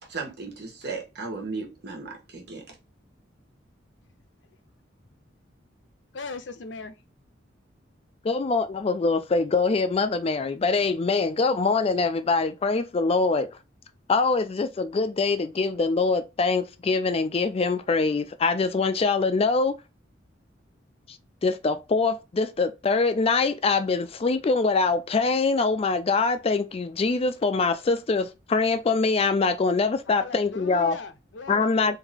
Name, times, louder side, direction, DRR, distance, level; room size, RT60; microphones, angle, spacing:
voice 1, 0.0-2.8, right 4 dB, 60° right, 1.4 m, -36 dB
voice 2, 6.1-7.0 30.1-32.0, left 3 dB, 75° left, 0.6 m, -39 dB
voice 3, 8.2-13.5 14.1-19.8 21.4-31.0 31.5-32.0, left 4 dB, 30° left, 0.4 m, -24 dB
3.5 x 2.7 x 3.4 m
head